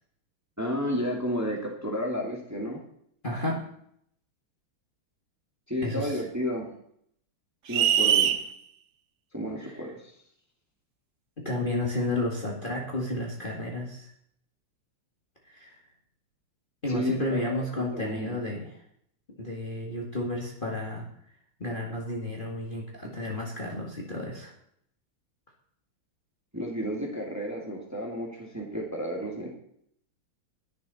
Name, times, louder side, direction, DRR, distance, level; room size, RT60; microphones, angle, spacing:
voice 1, 0.6-2.8 5.7-6.7 7.7-8.4 9.3-10.1 16.9-18.4 26.5-29.5, equal, 10° right, 0 dB, 2.1 m, -32 dB
voice 2, 3.2-3.6 5.8-6.2 9.6-9.7 11.4-14.1 15.5-15.8 16.8-18.7 19.3-21.1 21.6-24.5, left 1 dB, 25° left, -1 dB, 1.9 m, -32 dB
sound 1, 7.7-8.4, right 9 dB, 65° right, 1.2 m, -21 dB
20.0 x 7.0 x 4.2 m, 0.68 s
omnidirectional pair, 2.3 m